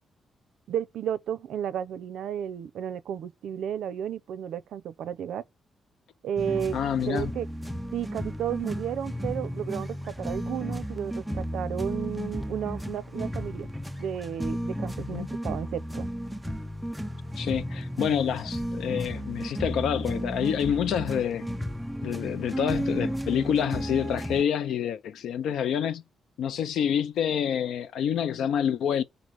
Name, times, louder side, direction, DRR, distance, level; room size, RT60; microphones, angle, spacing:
voice 1, 0.7-5.4 6.2-6.8 7.1-7.5 7.9-13.7 14.0-16.1, right 9 dB, 80° right, 0.5 m, -33 dB
sound 1, 6.4-24.4, equal, ahead, 0.4 m, -33 dB
voice 2, 6.7-7.3 15.1-15.3 17.4-21.5 22.0-26.0 26.4-29.0, left 8 dB, 85° left, 0.6 m, -27 dB
5.3 x 4.0 x 4.7 m
wide cardioid pair, 170°, 0 cm